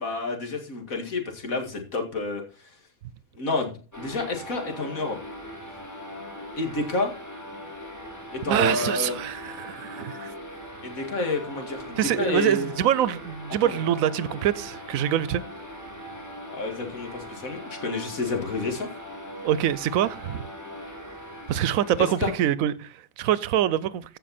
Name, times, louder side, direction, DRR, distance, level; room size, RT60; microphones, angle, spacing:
voice 1, 0.0-2.4 3.4-5.2 6.6-7.1 8.3-9.2 10.8-12.7 13.6-13.8 16.5-18.9 22.0-22.3, left 3 dB, 85° left, 2.5 m, -29 dB
sound 1, 3.9-22.3, equal, 15° left, 2.4 m, -40 dB
voice 2, 8.5-10.3 12.0-15.4 19.4-20.4 21.5-24.2, right 11 dB, 80° right, 1.0 m, -25 dB
15.0 x 5.6 x 4.2 m
omnidirectional pair, 1.4 m